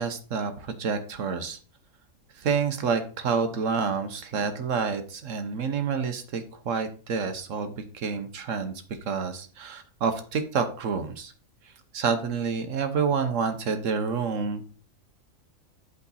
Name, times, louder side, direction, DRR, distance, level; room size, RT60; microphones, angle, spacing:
voice 1, 0.0-1.6 2.4-11.3 11.9-14.6, right 5 dB, 65° right, 8 dB, 1.3 m, -28 dB
8.4 x 5.1 x 4.0 m, 0.39 s
omnidirectional pair, 1.4 m